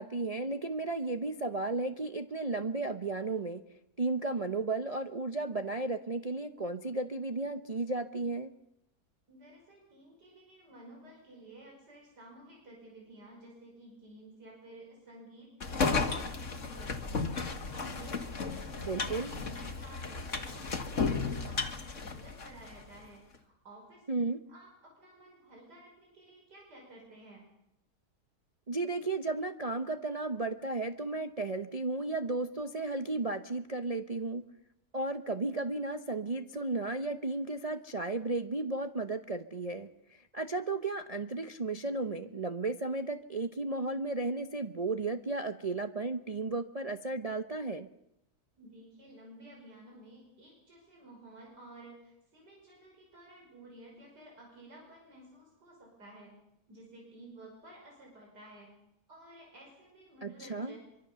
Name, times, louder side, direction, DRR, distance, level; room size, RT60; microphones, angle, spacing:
voice 1, 0.0-3.6 4.0-8.5 18.8-19.3 24.1-24.4 28.7-34.4 34.9-47.9 60.2-60.7, right 3 dB, 30° right, 8 dB, 0.7 m, -34 dB
voice 2, 9.3-17.3 17.7-20.6 20.9-24.0 24.5-27.4 48.6-56.3 56.7-58.7 59.1-60.8, right 1 dB, 85° right, -1 dB, 6.1 m, -53 dB
sound 1, 15.6-22.8, left 4 dB, 50° left, 2.2 m, -34 dB
24.5 x 24.0 x 6.9 m, 0.84 s
omnidirectional pair, 1.7 m